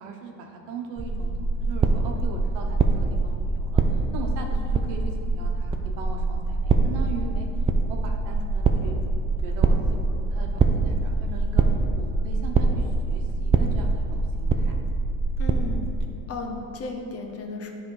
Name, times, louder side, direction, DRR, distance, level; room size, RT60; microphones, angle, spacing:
voice 1, 0.0-7.5 7.9-8.9 9.4-11.6 11.9-14.7, right 4 dB, 90° right, 2 dB, 1.0 m, -39 dB
sound 1, 1.0-16.0, right 3 dB, 20° right, 0.3 m, -24 dB
voice 2, 15.4-15.8 16.3-17.7, left 3 dB, 40° left, 3 dB, 0.9 m, -34 dB
10.0 x 3.4 x 4.7 m, 2.8 s
cardioid pair, 115°, 37 cm